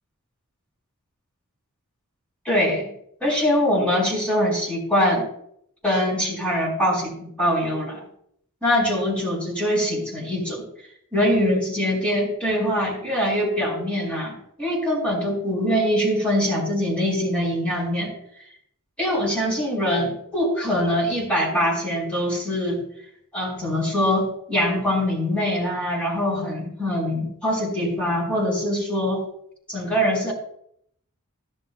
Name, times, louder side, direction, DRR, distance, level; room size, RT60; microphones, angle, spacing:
voice 1, 2.4-2.9 3.2-5.2 5.8-8.0 8.6-10.6 11.1-18.1 19.0-22.8 23.3-29.2 29.7-30.3, equal, 5° left, -5 dB, 4.8 m, -23 dB
14.5 x 11.5 x 2.3 m, 0.70 s
head